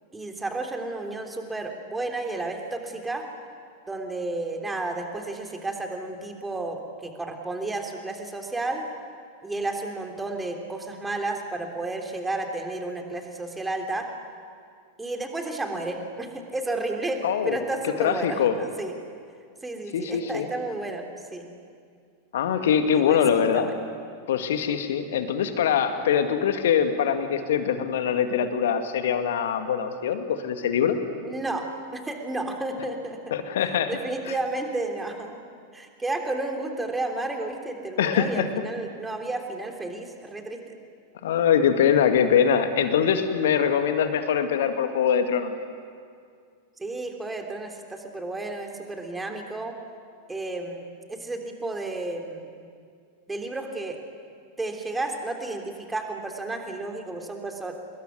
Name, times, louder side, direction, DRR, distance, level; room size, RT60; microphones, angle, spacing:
voice 1, 0.1-3.2 3.9-8.8 9.4-14.1 15.0-18.9 19.6-21.5 22.9-23.7 31.2-31.6 31.9-33.2 33.9-35.4 35.7-40.8 46.8-49.8 50.3-52.5 53.3-54.0 54.6-57.7, right 2 dB, 10° right, 3 dB, 3.3 m, -32 dB
voice 2, 17.2-18.5 19.9-20.5 22.3-23.7 24.3-31.0 33.3-34.0 38.0-38.5 41.2-45.5, left 8 dB, 60° left, 7 dB, 2.1 m, -23 dB
28.0 x 21.0 x 9.5 m, 2.2 s
figure-of-eight pair, 90°, 0 cm